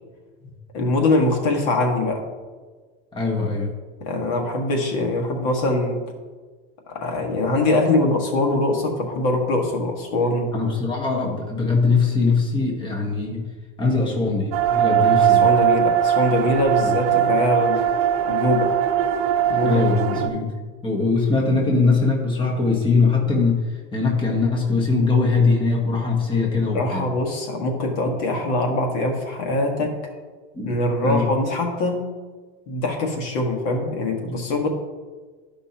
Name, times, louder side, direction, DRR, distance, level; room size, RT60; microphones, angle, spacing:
voice 1, 0.7-2.2 4.0-6.0 6.9-10.5 15.3-17.8 18.2-18.8 19.5-20.3 26.7-30.0 30.6-32.0 32.7-34.7, left 2 dB, 60° left, 2 dB, 1.6 m, -23 dB
voice 2, 3.1-3.7 10.5-13.5 13.8-15.5 16.8-16.9 19.6-20.5 20.8-23.6 23.9-27.1 30.5-30.8 31.0-31.3, left 4 dB, 15° left, -1 dB, 1.4 m, -21 dB
sound 1, 14.5-20.3, right 10 dB, 80° right, 0.7 m, -20 dB
12.5 x 5.4 x 2.9 m, 1.4 s
supercardioid pair, 140°, 29 cm